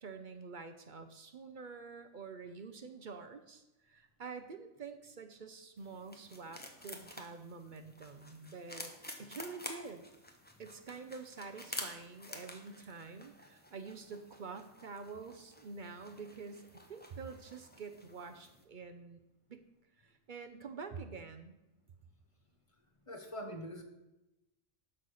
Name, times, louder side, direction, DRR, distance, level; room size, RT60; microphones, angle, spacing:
voice 1, 0.0-8.9 9.2-10.0 10.6-19.2 19.5-19.6 20.0-21.6, right 4 dB, 50° right, 8 dB, 0.7 m, -47 dB
sound 1, 5.8-18.6, left 1 dB, 10° left, 0.8 m, -50 dB
voice 2, 23.1-23.8, equal, 25° left, 4 dB, 1.0 m, -43 dB
11.5 x 4.1 x 6.4 m, 0.95 s
omnidirectional pair, 1.4 m